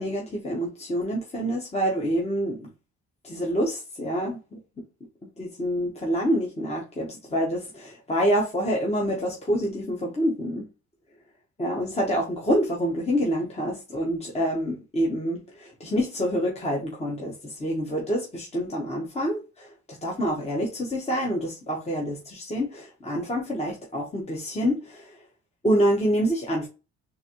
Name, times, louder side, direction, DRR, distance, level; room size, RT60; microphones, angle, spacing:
voice 1, 0.0-2.7 3.2-4.4 5.4-10.7 11.6-19.7 20.0-25.2 25.6-26.7, equal, 20° left, 1.0 m, -27 dB
4.0 x 2.6 x 2.9 m
cardioid pair, 90°, 30 cm